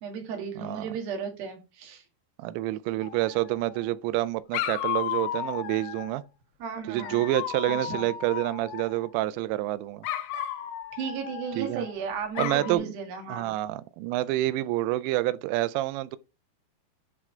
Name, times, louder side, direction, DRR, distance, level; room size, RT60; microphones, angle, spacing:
voice 1, 0.0-2.0 6.6-7.2 7.7-8.1 11.0-13.5, right 6 dB, 65° right, 3.2 m, -35 dB
voice 2, 0.6-0.9 2.4-6.2 6.9-10.1 11.6-11.9 12.4-12.9 13.3-16.2, right 16 dB, 90° right, 2.8 m, -28 dB
Dog, 3.0-3.9 4.5-6.2 7.0-9.1 10.0-11.9 12.4-12.8, left 11 dB, 80° left, 2.2 m, -34 dB
10.5 x 3.7 x 4.4 m
omnidirectional pair, 5.1 m